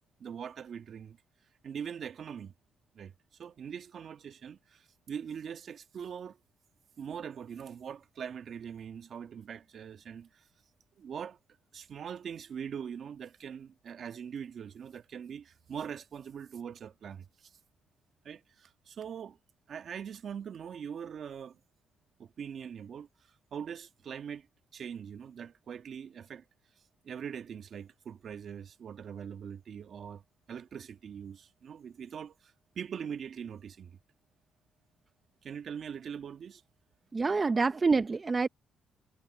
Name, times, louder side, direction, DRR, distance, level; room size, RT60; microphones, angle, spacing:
voice 1, 0.2-1.2 1.6-2.5 2.9-3.1 3.4-6.4 7.0-10.4 11.0-11.4 11.7-17.5 18.2-19.4 19.7-21.6 22.2-23.1 23.5-24.5 24.7-26.4 27.0-30.2 30.5-34.0 35.4-36.6, right 7 dB, 55° right, 1.5 m, -42 dB
voice 2, 37.1-38.5, right 4 dB, 30° right, 0.6 m, -26 dB
cardioid pair, 90°, 0 cm